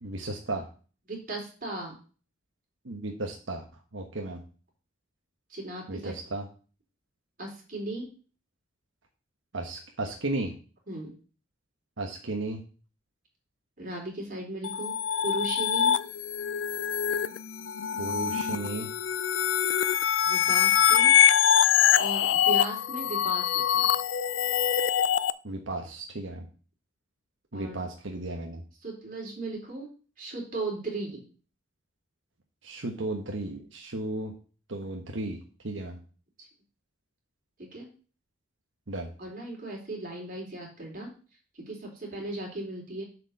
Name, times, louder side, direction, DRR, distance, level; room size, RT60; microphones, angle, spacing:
voice 1, 0.0-0.7 2.8-3.6 3.9-4.4 5.9-6.5 9.5-10.5 12.0-12.6 18.0-18.9 25.4-26.5 27.5-28.6 32.6-34.3 34.7-35.4 35.6-36.0 38.9-39.1, right 2 dB, 75° right, 2 dB, 1.2 m, -34 dB
voice 2, 1.1-2.0 5.5-6.2 7.4-8.1 10.9-11.1 13.8-15.0 15.2-16.0 20.2-21.1 22.0-23.9 27.5-27.8 28.8-29.9 30.2-31.2 37.6-37.9 39.2-41.1 41.5-43.0, right 2 dB, 45° right, -1 dB, 3.8 m, -37 dB
sound 1, 14.6-25.3, left 9 dB, 70° left, 0.4 m, -24 dB
7.5 x 5.0 x 6.5 m, 0.38 s
head